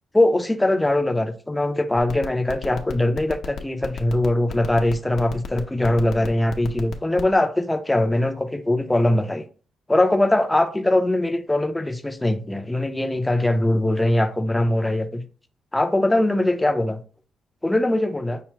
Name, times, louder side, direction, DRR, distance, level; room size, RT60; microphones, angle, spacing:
voice 1, 0.1-9.4 9.9-15.3 15.7-17.0 17.6-18.4, left 1 dB, 10° left, 0.5 m, -21 dB
sound 1, 2.0-7.3, left 7 dB, 70° left, 0.7 m, -32 dB
5.7 x 2.0 x 4.3 m
cardioid pair, 135°, 0 cm